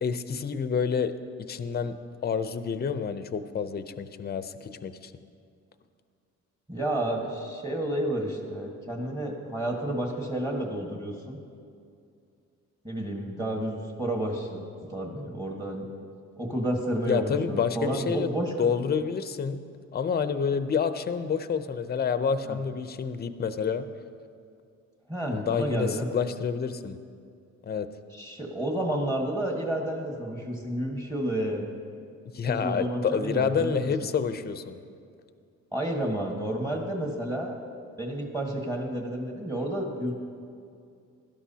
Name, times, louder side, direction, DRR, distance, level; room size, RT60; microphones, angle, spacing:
voice 1, 0.0-1.1 1.5-2.0 2.2-5.1 17.1-19.6 19.9-23.9 25.3-27.0 27.7-27.9 32.3-34.8, left 6 dB, 30° left, 11 dB, 0.6 m, -28 dB
voice 2, 6.7-11.4 12.8-14.6 14.9-15.9 16.4-18.5 22.5-22.6 25.1-26.1 28.1-31.8 32.5-33.9 35.7-37.6 38.0-40.1, right 1 dB, 15° right, 0 dB, 1.6 m, -30 dB
16.5 x 12.0 x 2.8 m, 2.4 s
cardioid pair, 90°, 30 cm